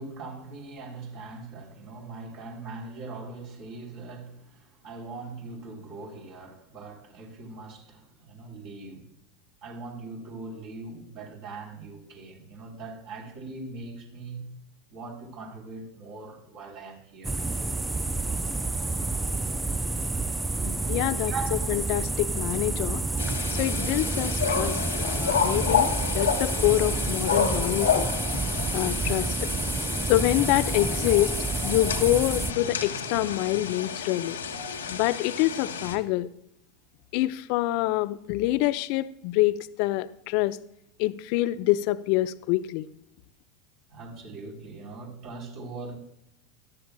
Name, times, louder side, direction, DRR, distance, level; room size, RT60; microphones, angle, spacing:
voice 1, 0.0-9.1 9.6-14.5 14.9-17.4 21.2-21.8 23.8-24.0 24.9-25.0 43.9-46.0, right 3 dB, 55° right, 3.9 m, -41 dB
sound 1, 17.2-32.5, right 3 dB, 10° right, 0.5 m, -29 dB
voice 2, 20.6-23.0 23.5-28.1 28.7-29.5 30.1-31.4 31.6-34.4 34.9-36.3 37.1-40.6 41.0-42.9, left 16 dB, 55° left, 0.6 m, -26 dB
sound 2, 23.2-36.0, left 6 dB, 85° left, 1.3 m, -30 dB
18.0 x 12.5 x 2.3 m
hypercardioid pair, 85°, 0 cm